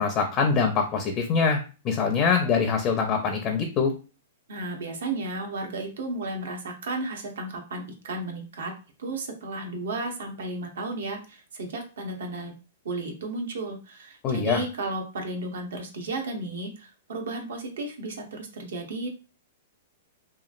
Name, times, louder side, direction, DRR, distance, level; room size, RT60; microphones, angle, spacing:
voice 1, 0.0-1.6 1.8-3.9 14.2-14.6, left 5 dB, 30° left, 4 dB, 0.4 m, -24 dB
voice 2, 4.5-8.7 9.0-12.5 12.8-19.1, right 2 dB, 80° right, 2 dB, 0.8 m, -33 dB
3.0 x 2.3 x 2.4 m, 0.33 s
hypercardioid pair, 150°, 0 cm